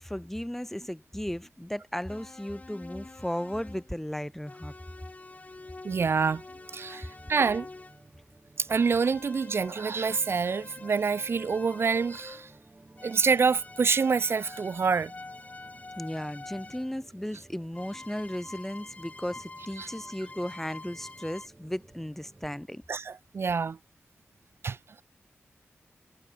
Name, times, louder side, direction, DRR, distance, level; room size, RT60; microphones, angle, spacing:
voice 1, 0.0-4.7 16.0-22.8, equal, 5° left, 0.7 m, -35 dB
sound 1, 2.1-3.9 4.5-8.0 8.7-12.6 13.0-16.9 17.7-21.5, left 3 dB, 35° left, 4.3 m, -46 dB
sound 2, 3.4-22.7, right 2 dB, 25° right, 5.4 m, -57 dB
voice 2, 5.8-6.4 6.7-7.7 8.6-12.5 13.0-15.1 19.8-19.9 22.9-23.8 24.6-25.0, right 5 dB, 60° right, 0.5 m, -27 dB
wide cardioid pair, 125°, 5 cm